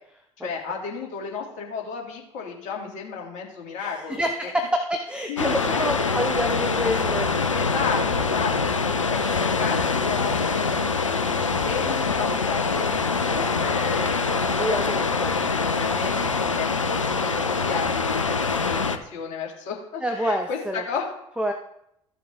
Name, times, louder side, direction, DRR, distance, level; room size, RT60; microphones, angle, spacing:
voice 1, 0.4-4.5 5.3-5.8 7.5-14.9 15.3-21.4, left 5 dB, 55° left, 0 dB, 2.7 m, -33 dB
voice 2, 3.8-7.5 14.5-15.4 20.0-20.8 21.4-21.5, equal, 5° right, 4 dB, 1.0 m, -27 dB
sound 1, 5.4-19.0, left 4 dB, 90° left, 0.6 m, -24 dB
14.5 x 7.0 x 3.6 m, 0.77 s
figure-of-eight pair, 65°, 16 cm